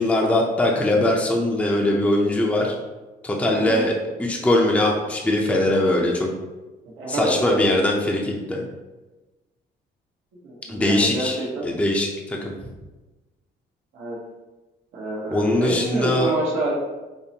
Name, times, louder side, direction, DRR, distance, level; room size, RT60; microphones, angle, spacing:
voice 1, 0.0-2.8 3.2-3.9 4.2-6.3 7.1-8.7 10.7-12.5 15.3-16.3, left 1 dB, 5° left, -1 dB, 0.5 m, -21 dB
voice 2, 3.5-3.9 7.0-7.6 10.4-11.7 13.9-14.2 14.9-16.7, right 1 dB, 85° right, -6 dB, 0.9 m, -27 dB
5.2 x 2.1 x 2.7 m, 1.1 s
cardioid pair, 90°, 20 cm